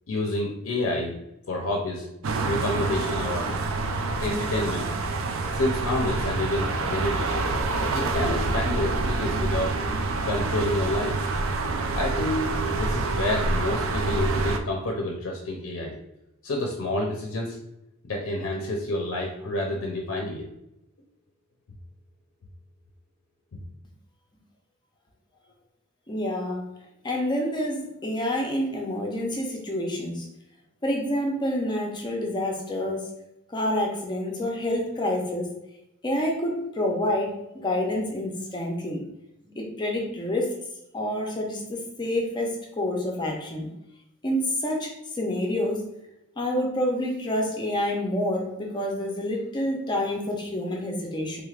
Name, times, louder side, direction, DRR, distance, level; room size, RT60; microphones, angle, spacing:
voice 1, 0.1-1.2 1.5-2.1 2.4-3.5 4.2-4.9 5.5-7.5 7.8-9.8 10.2-11.2 11.9-15.9 16.4-17.6 18.0-20.4, left 1 dB, 65° left, 0 dB, 0.5 m, -28 dB
sound 1, 2.2-14.6, right 3 dB, 65° right, 0.4 m, -27 dB
voice 2, 26.1-26.6 27.0-30.3 30.8-33.1 33.5-35.5 36.0-39.0 39.4-40.6 40.9-43.7 44.2-45.8 46.4-51.4, left 1 dB, 20° left, 1 dB, 0.5 m, -28 dB
3.3 x 3.3 x 2.4 m, 0.86 s
head